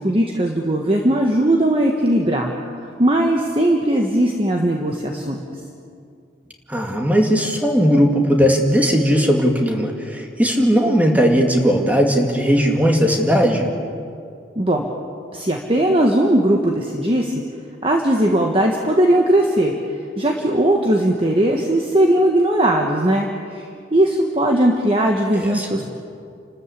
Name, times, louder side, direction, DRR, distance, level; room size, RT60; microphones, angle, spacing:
voice 1, 0.0-2.5 3.0-5.4 14.6-14.8 15.3-17.3 17.8-19.7 20.2-23.6 23.9-25.8, right 1 dB, 30° right, 1 dB, 1.4 m, -18 dB
voice 2, 6.7-13.7 25.4-25.7, equal, 10° right, 2 dB, 2.2 m, -17 dB
29.5 x 13.5 x 8.4 m, 2.4 s
head